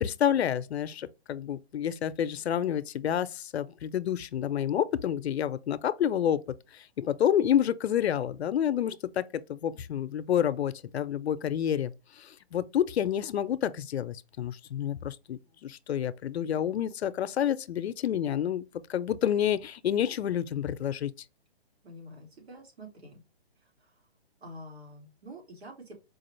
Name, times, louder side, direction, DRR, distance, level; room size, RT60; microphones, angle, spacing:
voice 1, 0.0-6.4 7.0-9.2 9.5-21.1, left 10 dB, 80° left, 0.6 m, -29 dB
voice 2, 21.8-23.2 23.8-23.9 24.4-26.0, equal, 80° right, 2.5 m, -47 dB
4.7 x 2.4 x 3.0 m
hypercardioid pair, 155°, 31 cm